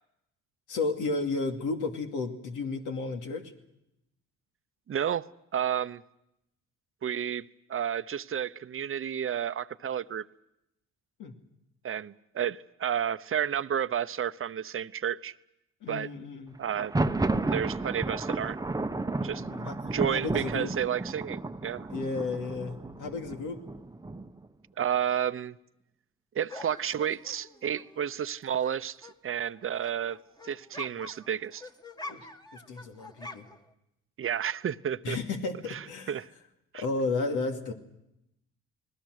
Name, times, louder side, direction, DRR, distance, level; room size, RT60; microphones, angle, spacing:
voice 1, 0.7-3.4 11.2-11.3 15.8-16.6 19.4-20.7 21.9-23.6 32.1-32.3 32.5-33.5 35.0-36.2 36.8-37.7, left 3 dB, 80° left, 3 dB, 2.6 m, -33 dB
voice 2, 4.9-5.2 5.5-6.0 7.0-10.2 11.8-15.3 15.9-16.1 16.6-16.9 17.5-18.6 19.2-19.4 19.8-21.9 24.8-25.6 26.3-30.2 30.4-31.6 34.2-35.2 35.7-36.3 36.7-36.8, right 9 dB, 45° right, 14 dB, 0.8 m, -31 dB
Thunder, 16.7-24.5, right 2 dB, 10° right, 0.9 m, -32 dB
sound 1, 26.5-28.7 29.0-33.7, left 2 dB, 15° left, 1.6 m, -46 dB
30.0 x 20.0 x 6.5 m, 0.84 s
cardioid pair, 90°, 30 cm